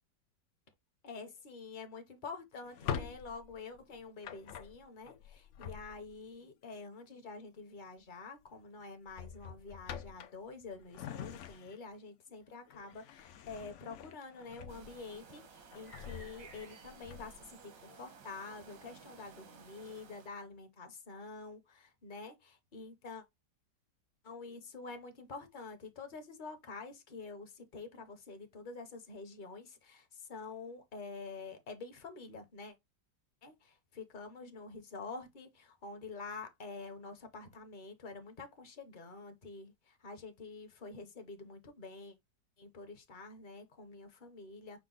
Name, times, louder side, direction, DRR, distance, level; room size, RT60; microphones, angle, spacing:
voice 1, 1.0-23.2 24.2-32.7 33.4-42.1 42.6-44.8, left 4 dB, 40° left, 0.7 m, -47 dB
Drawer open or close, 2.6-6.3 7.8-8.1 8.4-8.6 9.1-12.0 12.4-15.2 15.6-17.5, left 8 dB, 85° left, 0.6 m, -45 dB
sound 1, 14.7-20.3, right 5 dB, 75° right, 1.8 m, -55 dB
6.0 x 2.2 x 3.8 m
omnidirectional pair, 1.9 m